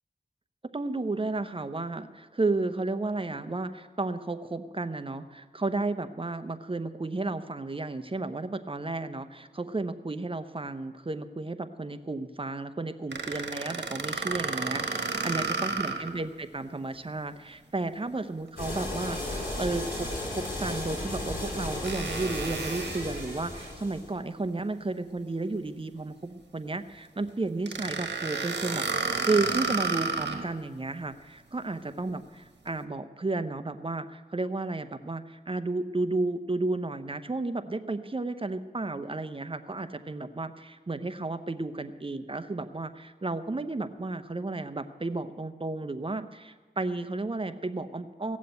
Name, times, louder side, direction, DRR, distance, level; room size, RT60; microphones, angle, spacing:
voice 1, 0.7-48.4, right 2 dB, 30° right, 10 dB, 0.8 m, -33 dB
sound 1, 13.1-16.2 16.6-16.7 20.4-20.5 21.8-23.7 27.7-30.5, right 4 dB, 80° right, 1.2 m, -32 dB
sound 2, 18.6-24.1, left 1 dB, 55° left, 5.4 m, -35 dB
16.5 x 7.4 x 8.2 m, 1.3 s
cardioid pair, 50°, 18 cm